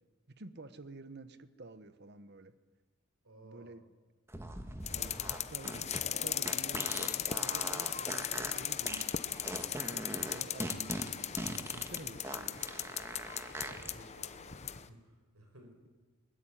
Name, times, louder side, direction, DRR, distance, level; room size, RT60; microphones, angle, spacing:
voice 1, 0.3-2.5 3.4-3.8 4.9-9.2 9.9-12.7, right 2 dB, 50° right, 13 dB, 1.1 m, -50 dB
voice 2, 3.2-3.7 12.3-12.9 13.6-15.7, right 1 dB, 85° right, 4 dB, 5.1 m, -57 dB
sound 1, 4.3-13.9, right 1 dB, 10° right, 1.7 m, -42 dB
sound 2, 4.9-14.8, left 9 dB, 30° left, 0.8 m, -37 dB
sound 3, 6.9-14.8, left 1 dB, 5° left, 4.8 m, -65 dB
21.0 x 20.0 x 10.0 m, 1.3 s
head